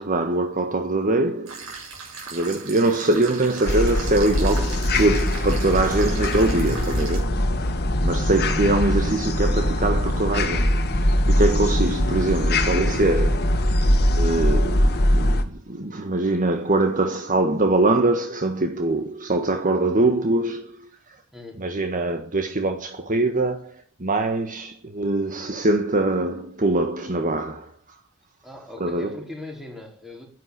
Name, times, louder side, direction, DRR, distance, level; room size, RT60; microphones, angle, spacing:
voice 1, 0.0-1.7 2.3-7.7 8.0-13.7 14.1-21.2 21.6-28.0 28.8-29.2, right 2 dB, 40° right, 1.6 m, -23 dB
sound 1, 1.5-7.2, right 5 dB, 65° right, 7.9 m, -38 dB
sound 2, 3.7-15.4, left 1 dB, 50° left, 2.0 m, -21 dB
voice 2, 21.3-21.6 28.4-30.3, left 2 dB, ahead, 4.8 m, -39 dB
11.5 x 11.0 x 9.6 m
head